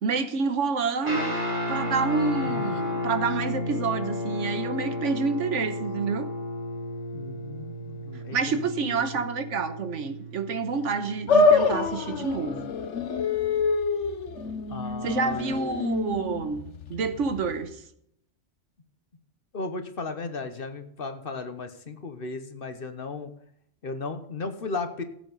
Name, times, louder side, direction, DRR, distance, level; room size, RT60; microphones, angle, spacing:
voice 1, 0.0-1.4 1.7-6.3 8.3-12.7 15.0-17.8, right 5 dB, 75° right, 10 dB, 1.3 m, -28 dB
Guitar, 1.0-12.5, left 1 dB, 40° right, 5.2 m, -33 dB
voice 2, 2.4-2.8 7.1-9.2 14.7-15.6 19.5-23.3 23.8-25.0, left 4 dB, 50° left, 9 dB, 1.2 m, -36 dB
sound 1, 11.3-17.7, left 4 dB, 70° left, 1.2 m, -26 dB
15.5 x 8.3 x 4.0 m, 0.71 s
omnidirectional pair, 1.3 m